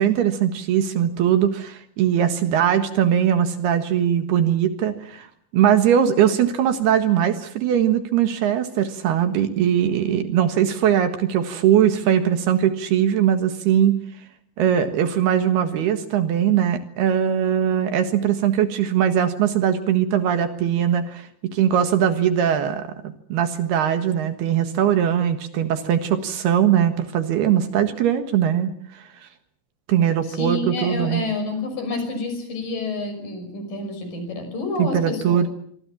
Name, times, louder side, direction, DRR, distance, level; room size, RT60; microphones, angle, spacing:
voice 1, 0.0-5.3 5.5-13.9 14.6-22.9 23.3-29.0 29.9-31.2 34.8-35.5, right 9 dB, 70° right, 8 dB, 3.4 m, -20 dB
voice 2, 30.3-35.4, left 2 dB, 50° left, 8 dB, 7.2 m, -28 dB
26.0 x 24.0 x 7.4 m, 0.65 s
omnidirectional pair, 5.1 m